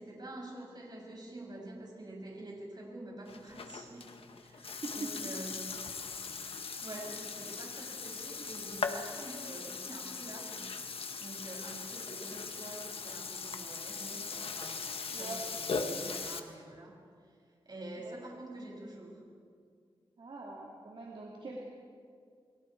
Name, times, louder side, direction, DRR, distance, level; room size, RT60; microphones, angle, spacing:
voice 1, 0.0-5.8 6.4-6.5 6.8-10.7 11.2-17.4 17.6-19.2, right 1 dB, 45° right, -1 dB, 6.5 m, -47 dB
Burping eructation, 3.3-16.4, left 4 dB, 75° left, 1.5 m, -40 dB
voice 2, 4.6-5.1 15.1-15.4 18.0-18.2 20.2-21.6, right 3 dB, 65° right, -3 dB, 2.8 m, -43 dB
29.0 x 23.5 x 4.7 m, 2.1 s
wide cardioid pair, 75°, 10 cm